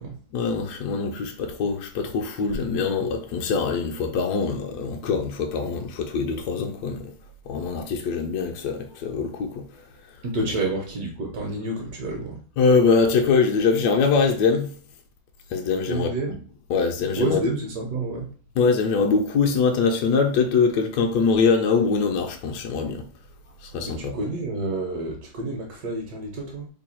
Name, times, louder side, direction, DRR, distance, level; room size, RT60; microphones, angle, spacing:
voice 1, 0.3-7.1 7.5-9.6 12.6-14.7 15.5-16.1 16.7-17.4 18.6-23.0 23.6-24.2, left 5 dB, 75° left, 1.0 m, -23 dB
voice 2, 10.2-12.4 15.9-16.4 17.1-18.3 23.8-26.7, right 2 dB, 65° right, 1.1 m, -29 dB
3.2 x 2.2 x 4.2 m
omnidirectional pair, 2.0 m